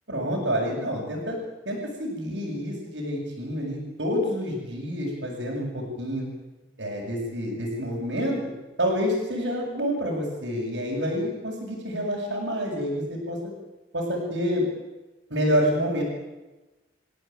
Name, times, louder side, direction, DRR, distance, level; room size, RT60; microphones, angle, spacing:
voice 1, 0.1-1.4 1.7-6.3 6.8-8.4 8.8-13.4 13.9-14.6 15.3-16.0, equal, 70° right, -5 dB, 7.2 m, -28 dB
28.0 x 16.5 x 9.3 m, 1.1 s
head